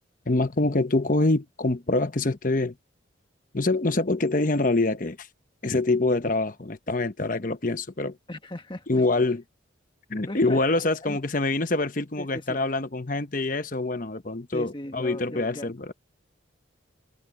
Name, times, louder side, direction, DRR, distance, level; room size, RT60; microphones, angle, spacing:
voice 1, 0.3-2.7 3.5-5.3 5.6-8.2 8.9-9.4 10.1-15.9, left 2 dB, 40° left, 1.0 m, -25 dB
voice 2, 8.3-9.0 10.3-10.6 11.0-11.2 12.2-12.6 14.5-15.7, left 1 dB, 25° left, 1.6 m, -38 dB
head